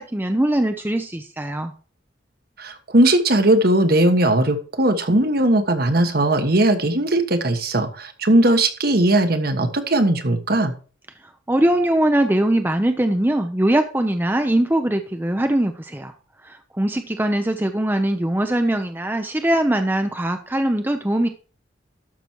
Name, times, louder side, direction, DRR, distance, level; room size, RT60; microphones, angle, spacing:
voice 1, 0.0-1.7 11.5-16.1 16.4-21.3, right 1 dB, 10° right, 7 dB, 0.6 m, -21 dB
voice 2, 2.6-10.7, right 1 dB, 55° right, 8 dB, 1.3 m, -18 dB
12.5 x 6.0 x 4.5 m, 0.38 s
head